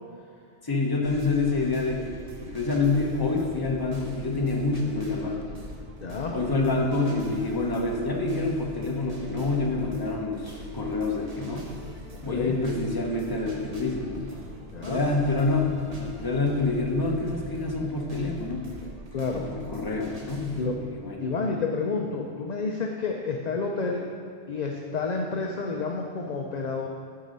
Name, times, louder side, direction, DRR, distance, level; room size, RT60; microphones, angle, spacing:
voice 1, 0.6-2.1 2.4-5.4 6.3-11.7 12.2-14.3 14.9-18.7 19.3-21.3, left 3 dB, 20° left, 0 dB, 0.9 m, -27 dB
sound 1, 1.0-20.6, equal, 35° right, 1.1 m, -42 dB
voice 2, 6.0-6.3 12.1-12.5 14.7-15.0 19.1-19.5 20.6-20.8 21.2-24.1 24.5-26.9, left 4 dB, 45° left, 1 dB, 0.6 m, -30 dB
10.0 x 4.8 x 5.4 m, 2.2 s
omnidirectional pair, 1.2 m